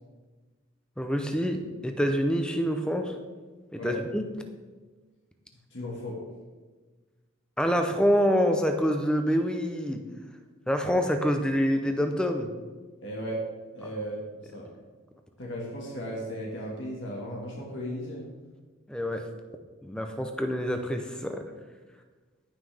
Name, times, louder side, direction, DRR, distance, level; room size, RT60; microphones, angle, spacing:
voice 1, 1.0-3.1 3.7-4.2 7.6-10.0 10.7-12.5 18.9-19.3 19.8-21.4, equal, 5° left, 5 dB, 0.7 m, -26 dB
voice 2, 5.7-6.2 13.0-13.4 13.7-14.7 15.4-18.3, equal, 60° left, -3 dB, 1.8 m, -36 dB
17.0 x 5.9 x 3.5 m, 1.4 s
head